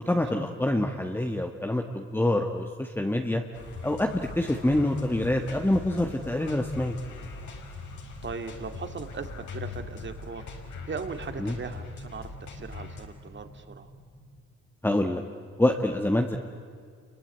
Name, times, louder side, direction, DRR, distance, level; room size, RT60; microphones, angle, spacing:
voice 1, 0.1-3.4 3.8-7.0 11.4-11.5 14.8-15.2 15.6-16.4, left 1 dB, 5° left, 3 dB, 1.5 m, -26 dB
sound 1, 3.5-13.1, left 4 dB, 70° left, 5.0 m, -41 dB
sound 2, 7.3-14.4, equal, 40° left, 4.0 m, -50 dB
voice 2, 8.2-10.5 10.9-13.9, right 5 dB, 40° right, 8 dB, 2.3 m, -38 dB
28.0 x 23.5 x 9.1 m, 2.2 s
cardioid pair, 90°, 30 cm